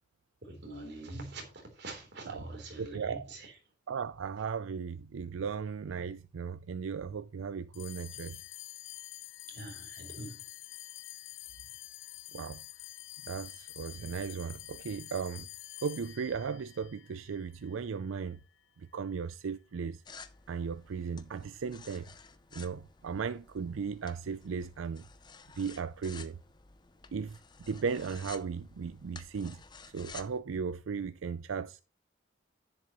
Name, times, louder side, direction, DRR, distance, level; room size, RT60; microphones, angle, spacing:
voice 1, 0.4-3.6 9.5-10.5, right 2 dB, 55° right, 3.5 m, -44 dB
voice 2, 2.8-3.3 3.9-8.4 12.3-12.6 13.3-15.5 15.8-18.4 18.8-20.0 20.5-22.1 22.5-25.1 25.6-26.4 27.1-27.4 27.7-29.6 29.9-31.8, right 6 dB, 85° right, 0.4 m, -36 dB
sound 1, 7.7-18.4, left 16 dB, 75° left, 0.5 m, -48 dB
sound 2, 20.1-30.4, left 5 dB, 20° left, 0.6 m, -53 dB
10.5 x 10.0 x 3.0 m
head